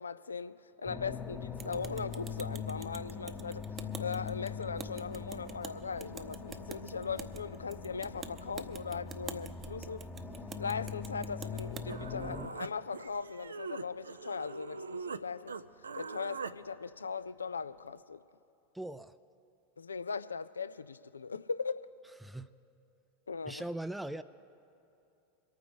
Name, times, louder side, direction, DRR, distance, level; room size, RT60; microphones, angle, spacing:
voice 1, 0.0-3.6 4.0-10.0 10.6-15.6 16.0-18.2 19.8-21.8 23.3-23.6, left 5 dB, 85° left, 0.3 m, -39 dB
sound 1, 0.9-12.5, left 5 dB, 20° left, 0.9 m, -42 dB
sound 2, 1.6-11.9, right 6 dB, 30° right, 0.8 m, -48 dB
Human voice, 11.9-15.2 15.5-16.6, right 5 dB, 85° right, 0.4 m, -42 dB
voice 2, 18.7-19.2 22.2-22.5 23.4-24.2, right 1 dB, 5° right, 0.4 m, -39 dB
27.0 x 9.2 x 3.4 m
figure-of-eight pair, 85°, 0 cm